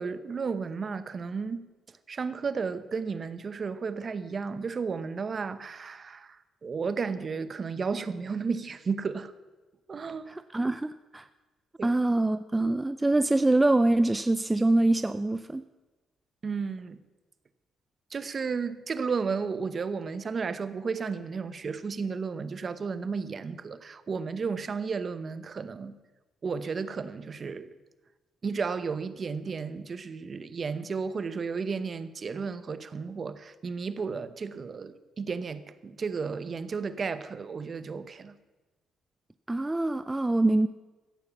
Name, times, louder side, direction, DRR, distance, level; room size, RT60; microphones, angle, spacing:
voice 1, 0.0-1.7 2.1-6.4 6.6-9.3 9.9-10.4 11.8-12.0 16.4-17.0 18.1-25.9 26.4-27.7 28.4-38.3, right 5 dB, 40° right, 0.9 m, -33 dB
voice 2, 10.3-11.3 11.8-15.6 39.5-40.7, right 2 dB, 15° right, 0.4 m, -24 dB
14.5 x 8.4 x 7.2 m
cardioid pair, 90°, 0 cm